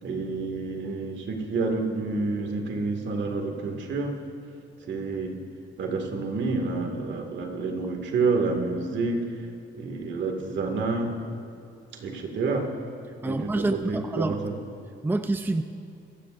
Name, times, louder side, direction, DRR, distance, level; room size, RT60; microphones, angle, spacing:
voice 1, 0.0-4.2 4.9-5.4 5.8-9.5 9.7-11.2 11.9-12.7 13.2-14.5, right 3 dB, 65° right, 3 dB, 2.3 m, -29 dB
voice 2, 13.2-14.3 15.0-15.6, right 2 dB, 10° right, 8 dB, 0.6 m, -27 dB
25.0 x 15.5 x 2.6 m, 2.5 s
cardioid pair, 90°, 20 cm